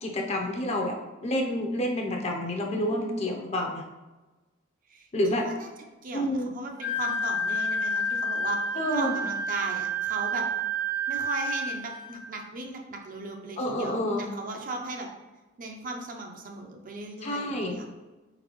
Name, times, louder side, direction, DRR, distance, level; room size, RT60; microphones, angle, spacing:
voice 1, 0.0-3.8 5.1-5.5 6.1-6.5 8.7-9.1 13.6-14.2 17.2-17.8, left 1 dB, 35° left, 1 dB, 0.6 m, -28 dB
voice 2, 6.0-10.5 11.1-15.1 15.6-17.9, right 2 dB, 45° right, 2 dB, 0.6 m, -37 dB
Wind instrument woodwind instrument, 6.8-12.3, right 1 dB, 75° left, 1.2 m, -30 dB
4.5 x 4.0 x 3.0 m, 1.1 s
head